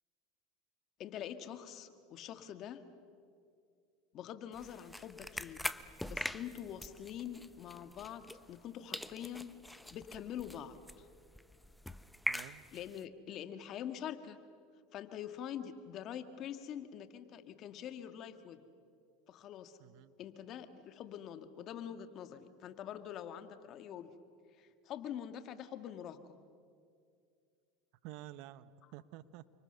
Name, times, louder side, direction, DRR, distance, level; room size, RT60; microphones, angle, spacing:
voice 1, 1.0-2.8 4.1-5.6 6.0-11.1 12.7-14.4 14.9-18.6 19.3-19.8 20.2-24.1 24.6-26.4 28.8-28.9, left 9 dB, 45° left, 9 dB, 1.8 m, -45 dB
sound 1, 4.5-8.7 8.9-13.0, left 1 dB, 5° left, 0.8 m, -43 dB
voice 2, 12.3-12.6 19.8-20.1 28.0-29.5, right 14 dB, 60° right, 15 dB, 1.0 m, -50 dB
29.5 x 25.0 x 6.9 m, 2.3 s
supercardioid pair, 105°, 0 cm